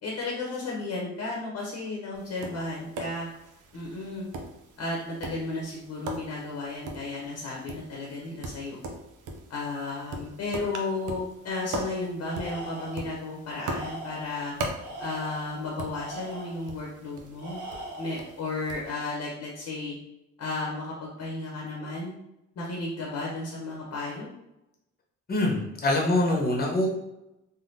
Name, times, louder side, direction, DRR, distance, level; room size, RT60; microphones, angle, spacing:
voice 1, 0.0-3.3 3.7-4.3 4.8-8.8 9.5-14.5 15.0-17.6 18.0-20.0 20.4-22.2 22.6-24.3, left 2 dB, 60° left, -3 dB, 0.9 m, -33 dB
Tap, 2.1-18.9, right 2 dB, 80° right, 0.6 m, -41 dB
Tools, 12.2-13.1 13.6-14.4 14.8-16.7 17.4-18.3, right 1 dB, 65° right, 1.4 m, -40 dB
voice 2, 25.3-26.9, left 1 dB, 30° left, 0 dB, 0.9 m, -24 dB
3.5 x 2.1 x 2.7 m, 0.88 s
cardioid pair, 90°, 30 cm